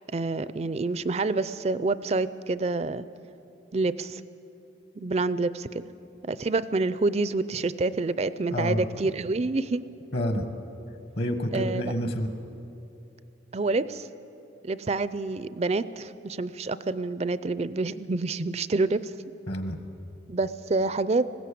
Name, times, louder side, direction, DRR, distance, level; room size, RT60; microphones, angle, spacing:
voice 1, 0.1-3.1 3.7-4.2 5.0-5.8 6.2-9.8 11.5-11.9 13.5-14.1 14.6-19.1 20.3-21.3, right 3 dB, 35° right, 15 dB, 0.4 m, -27 dB
voice 2, 8.5-8.8 10.1-10.5 11.2-12.3 19.5-19.8, equal, 60° left, 7 dB, 1.5 m, -28 dB
20.0 x 16.0 x 8.5 m, 2.9 s
head